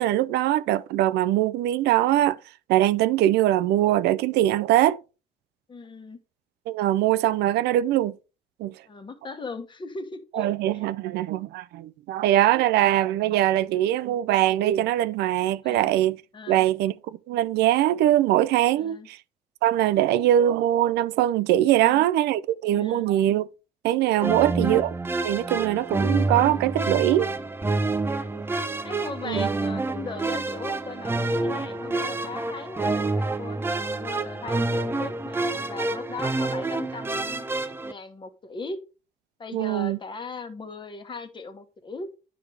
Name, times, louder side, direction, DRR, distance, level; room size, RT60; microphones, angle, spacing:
voice 1, 0.0-2.4 2.7-5.0 6.7-8.2 8.6-8.7 10.3-16.2 16.5-16.9 17.3-19.2 19.6-23.5 23.8-24.9 25.2-27.3 29.2-29.5 39.5-40.0, right 13 dB, 80° right, 0.4 m, -22 dB
voice 2, 5.7-6.2 8.9-10.5 10.7-10.9 15.6-15.9 16.3-16.7 18.8-19.1 21.7-22.1 22.7-23.1 24.2-24.6 28.1-28.4 28.8-37.5 37.8-38.8 39.4-42.1, left 4 dB, 30° left, 1.2 m, -38 dB
sound 1, 24.2-37.9, right 2 dB, 15° right, 0.6 m, -28 dB
10.0 x 4.7 x 3.3 m
cardioid pair, 110°, 17 cm